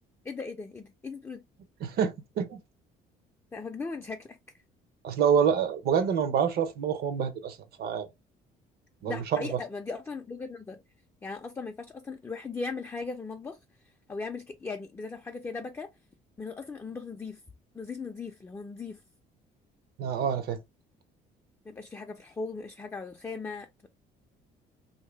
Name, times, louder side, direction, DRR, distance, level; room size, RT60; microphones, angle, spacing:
voice 1, 0.2-1.4 3.5-4.4 9.1-10.8 11.2-13.6 14.1-15.9 16.4-17.4 17.7-19.0 21.7-23.9, left 4 dB, 15° left, 0.4 m, -38 dB
voice 2, 1.8-2.6 5.0-8.1 9.0-9.5 20.0-20.6, right 7 dB, 65° right, 0.8 m, -27 dB
3.0 x 2.8 x 3.3 m
cardioid pair, 110°, 17 cm